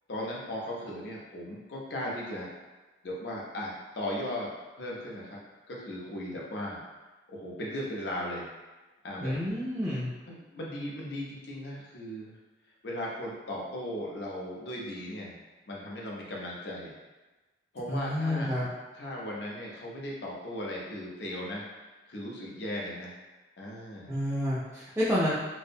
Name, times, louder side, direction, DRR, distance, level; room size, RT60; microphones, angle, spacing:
voice 1, 0.1-2.5 3.0-4.5 4.8-5.4 5.7-6.8 7.3-8.5 9.0-9.4 10.3-12.4 12.8-16.9 17.7-18.5 18.9-21.6 22.1-23.1 23.6-24.1, left 1 dB, 65° left, -3 dB, 0.5 m, -37 dB
voice 2, 9.2-10.1 17.9-18.7 24.1-25.3, left 1 dB, 10° right, -10 dB, 0.3 m, -29 dB
2.5 x 2.0 x 2.6 m, 1.2 s
head